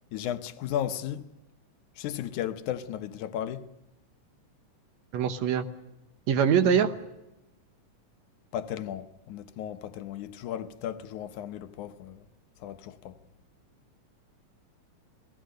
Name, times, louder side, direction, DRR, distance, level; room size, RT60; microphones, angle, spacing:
voice 1, 0.1-1.2 2.0-3.7 6.6-6.8 8.5-12.2 12.6-13.1, left 10 dB, 80° left, 2.3 m, -35 dB
voice 2, 5.1-5.7 6.3-6.9, right 8 dB, 70° right, 2.1 m, -23 dB
28.0 x 18.5 x 6.6 m
omnidirectional pair, 3.5 m